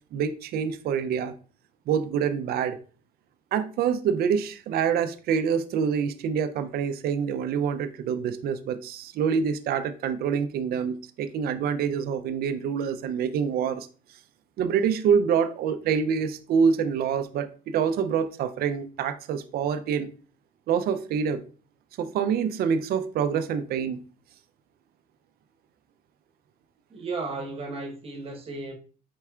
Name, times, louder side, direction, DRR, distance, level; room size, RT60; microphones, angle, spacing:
voice 1, 0.1-1.3 1.9-2.8 3.5-13.9 14.6-20.1 20.7-21.4 22.0-24.0, right 7 dB, 65° right, 0.5 m, -26 dB
voice 2, 26.9-28.7, right 3 dB, 35° right, 1.1 m, -34 dB
4.7 x 4.3 x 2.4 m
cardioid pair, 110°, 17 cm